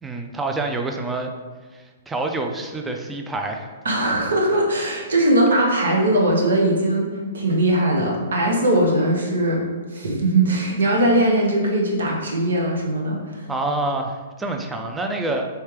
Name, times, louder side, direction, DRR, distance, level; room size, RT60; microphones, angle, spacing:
voice 1, 0.0-1.3 1.7-3.7 13.5-15.5, right 2 dB, 10° right, 3 dB, 0.3 m, -27 dB
voice 2, 3.8-7.1 7.3-9.6 9.9-13.5, right 1 dB, 90° right, -1 dB, 0.9 m, -20 dB
3.3 x 3.2 x 3.2 m, 1.4 s
hypercardioid pair, 145°, 0 cm